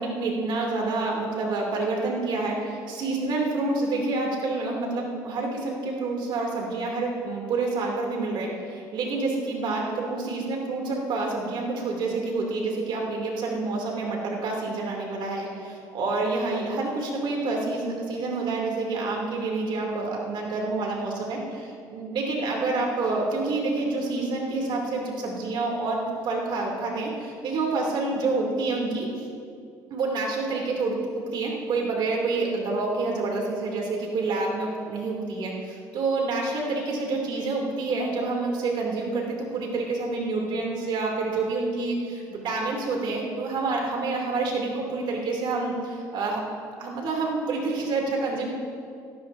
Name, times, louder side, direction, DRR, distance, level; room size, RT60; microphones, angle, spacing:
voice 1, 0.0-29.1 29.9-31.0 31.3-46.4 46.8-48.5, right 3 dB, 65° right, -1 dB, 2.9 m, -28 dB
17.0 x 13.5 x 2.8 m, 2.4 s
supercardioid pair, 75°, 9 cm